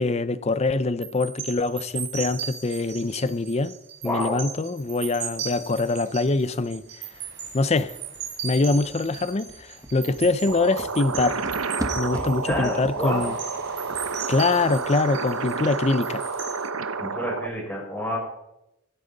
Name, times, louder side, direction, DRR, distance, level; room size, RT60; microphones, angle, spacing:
voice 1, 0.0-3.7 4.0-6.9 7.5-8.0 8.4-11.4 12.0-13.4 14.3-16.3, left 3 dB, 30° left, 0.5 m, -24 dB
sound 1, 1.0-16.7, right 7 dB, 55° right, 3.5 m, -38 dB
voice 2, 4.0-4.4 12.1-13.3 17.0-18.2, left 1 dB, 10° left, 5.8 m, -29 dB
sound 2, 6.1-6.4 6.8-6.9 7.1-14.9 15.1-15.2, equal, 15° right, 1.1 m, -39 dB
sound 3, 10.5-17.5, right 4 dB, 80° right, 0.9 m, -30 dB
16.0 x 12.0 x 4.1 m
head